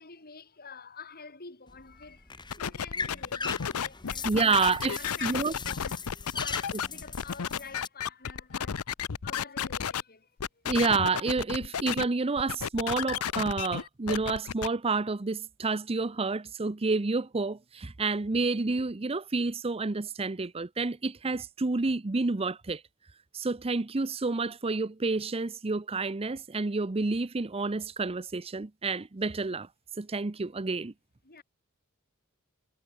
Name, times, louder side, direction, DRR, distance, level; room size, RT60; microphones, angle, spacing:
voice 1, 0.0-4.6 5.0-8.9 9.2-10.6 31.2-31.4, left 5 dB, 45° left, 4.6 m, -48 dB
sound 1, 1.7-7.9, left 4 dB, 20° left, 2.7 m, -39 dB
sound 2, 2.5-10.0 10.4-12.0 12.4-14.7, left 7 dB, 90° left, 0.7 m, -32 dB
voice 2, 4.2-5.5 10.7-22.8 23.3-29.7 30.0-30.9, right 3 dB, 25° right, 0.7 m, -29 dB
head